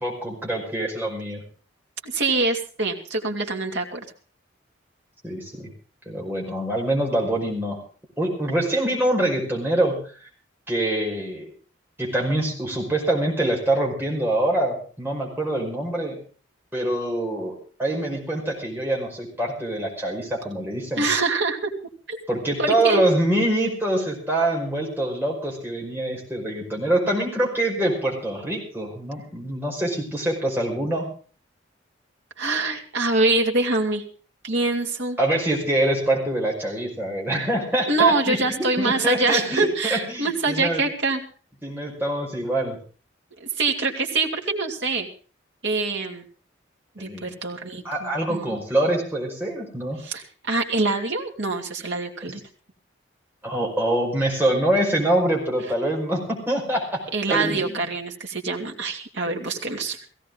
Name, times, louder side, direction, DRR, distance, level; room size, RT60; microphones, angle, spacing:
voice 1, 0.0-1.4 5.2-5.7 6.1-7.8 8.2-10.0 10.7-11.5 12.0-16.2 16.7-21.1 22.3-31.1 35.2-40.8 41.6-42.8 47.0-47.3 47.8-50.0 53.4-57.0 57.3-57.9, right 1 dB, 10° right, -2 dB, 5.3 m, -25 dB
voice 2, 2.0-4.0 21.0-21.7 22.1-22.2 22.6-23.0 32.4-34.0 34.4-35.2 37.9-41.2 43.4-45.1 45.6-46.2 47.0-48.6 50.0-52.4 57.1-60.0, right 3 dB, 65° right, 2 dB, 2.7 m, -24 dB
17.5 x 16.5 x 3.9 m, 0.40 s
head